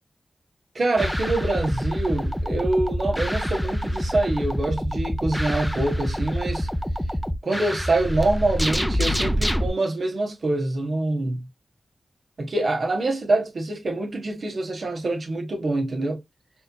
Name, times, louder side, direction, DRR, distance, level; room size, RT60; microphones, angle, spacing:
voice 1, 0.7-6.7 7.4-11.5 12.4-16.2, right 2 dB, 65° right, 1.3 m, -25 dB
sound 1, 1.0-9.7, equal, ahead, 0.6 m, -26 dB
4.2 x 3.0 x 2.2 m
cardioid pair, 45°, 0 cm